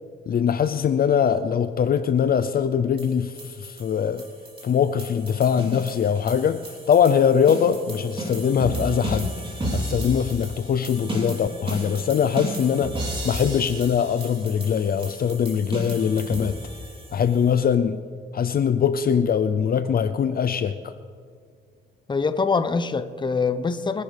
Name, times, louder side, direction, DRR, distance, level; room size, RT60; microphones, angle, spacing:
voice 1, 0.3-4.2 4.6-9.3 9.7-13.0 13.2-16.6 17.1-18.0 18.3-20.7, left 7 dB, 50° left, 0.6 m, -22 dB
sound 1, 3.0-17.5, right 1 dB, 25° right, 3.5 m, -34 dB
voice 2, 22.1-24.0, left 4 dB, 25° left, 0.8 m, -24 dB
24.0 x 11.0 x 3.4 m
cardioid pair, 90°, 20 cm